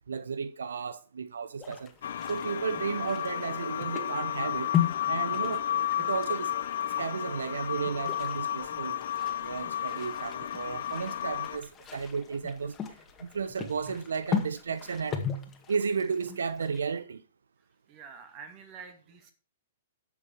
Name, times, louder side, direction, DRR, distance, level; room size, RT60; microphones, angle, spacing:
voice 1, 0.1-1.9 2.3-4.7 5.1-5.7 6.0-6.5 7.0-9.0 9.4-12.8 13.2-15.2 15.7-17.2, right 5 dB, 75° right, 0.7 m, -33 dB
sound 1, 1.6-17.0, left 8 dB, 20° left, 1.9 m, -38 dB
sound 2, 2.0-11.6, left 10 dB, 60° left, 1.0 m, -32 dB
voice 2, 17.9-19.3, right 6 dB, 35° right, 2.5 m, -47 dB
11.5 x 7.2 x 4.9 m
figure-of-eight pair, 115°, 0 cm